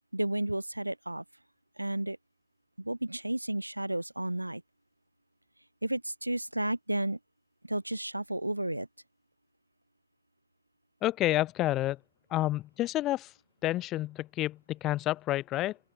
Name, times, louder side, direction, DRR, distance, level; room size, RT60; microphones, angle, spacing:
voice 1, 0.1-1.2 1.8-2.2 2.8-4.6 5.8-7.2 7.6-8.9, right 1 dB, 85° right, 0.4 m, -32 dB
voice 2, 11.0-12.0 12.3-13.3 13.6-15.8, left 15 dB, 35° left, 0.5 m, -29 dB
open air
figure-of-eight pair, 90°, 0 cm